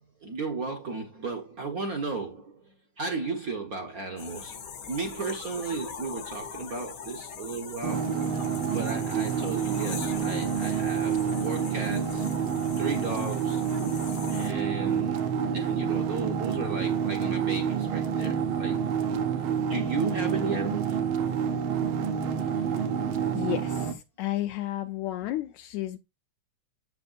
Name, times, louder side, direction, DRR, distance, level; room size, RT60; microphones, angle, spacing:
voice 1, 0.2-2.5 3.0-4.6 4.9-8.0 8.7-12.3 12.8-13.6 14.3-15.2 15.5-18.8 19.7-21.1, right 4 dB, 60° right, 0.9 m, -34 dB
sound 1, 4.2-14.5, left 7 dB, 60° left, 1.1 m, -41 dB
sound 2, 7.8-23.9, right 7 dB, 75° right, 1.2 m, -28 dB
voice 2, 23.3-26.0, left 15 dB, 80° left, 1.9 m, -32 dB
8.0 x 6.8 x 2.5 m
omnidirectional pair, 3.4 m